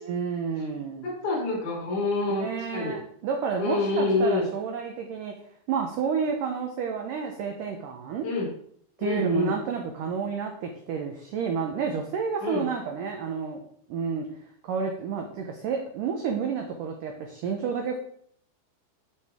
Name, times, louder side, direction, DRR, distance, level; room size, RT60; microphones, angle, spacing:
voice 1, 0.1-1.1 2.3-5.3 5.7-8.3 9.0-13.6 13.9-14.3 14.6-18.0, right 6 dB, 85° right, 3 dB, 1.8 m, -30 dB
voice 2, 1.0-2.5 2.7-2.9 3.6-4.5 8.2-8.5 9.0-9.5 12.4-12.6, left 2 dB, 50° left, -3 dB, 3.4 m, -26 dB
9.3 x 6.8 x 3.6 m, 0.64 s
omnidirectional pair, 5.0 m